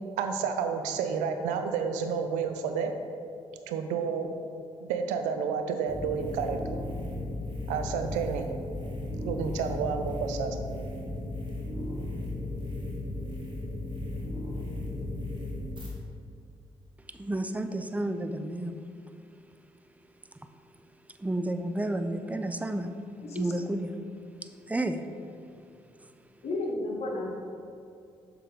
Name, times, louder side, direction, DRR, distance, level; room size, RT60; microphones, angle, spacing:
voice 1, 0.2-3.0 3.7-4.3 4.8-6.6 7.7-8.5 9.2-10.6, right 6 dB, 90° right, 0.5 m, -30 dB
sound 1, 5.9-15.9, left 2 dB, 40° right, 1.5 m, -35 dB
voice 2, 17.1-18.8 21.2-22.9 23.3-24.0 24.7-25.1, right 1 dB, 10° right, 0.5 m, -31 dB
voice 3, 23.2-23.5 26.4-27.3, left 2 dB, 55° left, 1.2 m, -32 dB
6.7 x 3.8 x 5.0 m
supercardioid pair, 55°, 12 cm